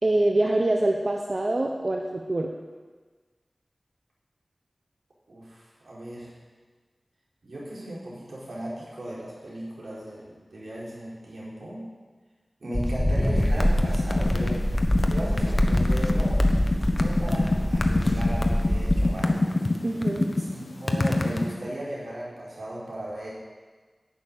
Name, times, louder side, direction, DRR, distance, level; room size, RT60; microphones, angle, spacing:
voice 1, 0.0-2.5 19.8-20.3, right 2 dB, 45° right, 2 dB, 0.9 m, -24 dB
voice 2, 5.3-6.3 7.4-11.8 12.6-14.6 15.1-16.4 16.9-19.4 20.4-23.3, right 1 dB, 85° right, -7 dB, 4.6 m, -36 dB
sound 1, 12.7-19.2, left 1 dB, 15° left, 1.0 m, -25 dB
sound 2, 13.4-21.5, left 2 dB, 55° left, 1.1 m, -25 dB
11.0 x 6.5 x 8.8 m, 1.4 s
wide cardioid pair, 55°, 0 cm